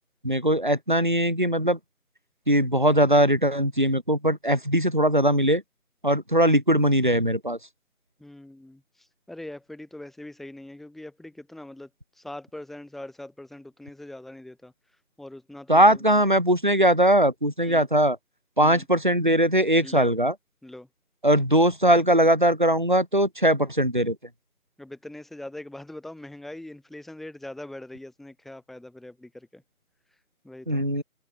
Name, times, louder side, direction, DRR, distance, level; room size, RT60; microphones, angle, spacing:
voice 1, 0.2-1.8 2.5-5.6 6.0-7.6 15.7-18.2 18.6-20.3 21.2-24.2 30.7-31.0, right 1 dB, 35° right, 0.7 m, -20 dB
voice 2, 8.2-11.9 12.1-14.7 15.2-16.0 17.6-17.9 18.6-18.9 19.8-20.1 20.6-20.9 24.8-29.6 30.4-30.9, left 1 dB, ahead, 6.4 m, -42 dB
figure-of-eight pair, 165°, 44 cm